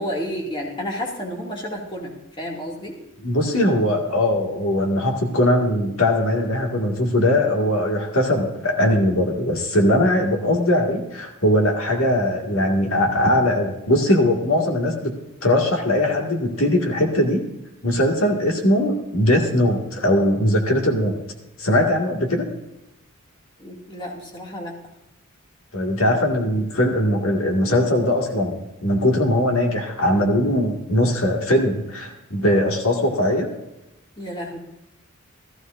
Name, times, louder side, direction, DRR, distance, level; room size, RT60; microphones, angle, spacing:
voice 1, 0.0-3.0 23.6-24.8 34.2-34.6, equal, 20° left, -2 dB, 2.2 m, -31 dB
voice 2, 3.2-15.2 15.4-17.5 17.8-21.2 21.6-22.5 25.7-33.5, left 1 dB, 70° left, 1 dB, 1.9 m, -20 dB
15.5 x 14.5 x 2.5 m, 0.92 s
head